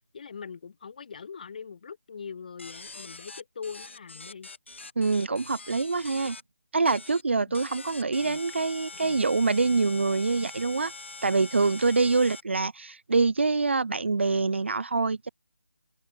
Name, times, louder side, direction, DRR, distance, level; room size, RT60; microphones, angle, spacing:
voice 1, 0.1-4.5 7.5-7.6 8.2-8.4 8.9-9.2, left 6 dB, 35° left, 1.9 m, -42 dB
sound 1, 2.6-6.4 6.9-7.2 7.5-12.4, left 3 dB, 55° left, 3.3 m, -43 dB
voice 2, 5.0-6.4 6.7-10.9 11.2-15.3, right 4 dB, 55° right, 0.5 m, -25 dB
open air
figure-of-eight pair, 155°, 8 cm